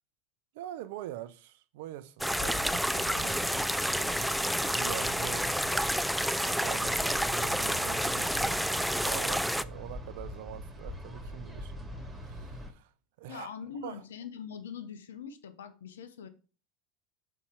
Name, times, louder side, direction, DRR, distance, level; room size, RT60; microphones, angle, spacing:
voice 1, 0.5-5.5 6.2-12.9 13.2-13.5 13.8-14.0, right 13 dB, 75° right, 0.5 m, -44 dB
sound 1, 2.2-9.6, equal, ahead, 0.3 m, -29 dB
sound 2, 2.3-12.7, equal, 15° right, 2.0 m, -43 dB
voice 2, 13.3-16.3, left 7 dB, 90° left, 0.9 m, -42 dB
5.7 x 4.2 x 4.9 m
hypercardioid pair, 95°, 0 cm